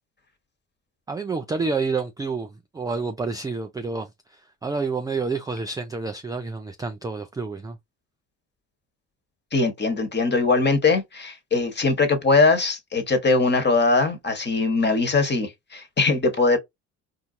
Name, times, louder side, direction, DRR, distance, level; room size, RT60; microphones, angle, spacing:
voice 1, 1.1-7.8, right 4 dB, 10° right, 0.4 m, -29 dB
voice 2, 9.5-16.6, left 3 dB, 25° left, 1.3 m, -21 dB
4.3 x 2.7 x 2.6 m
hypercardioid pair, 60°, 42 cm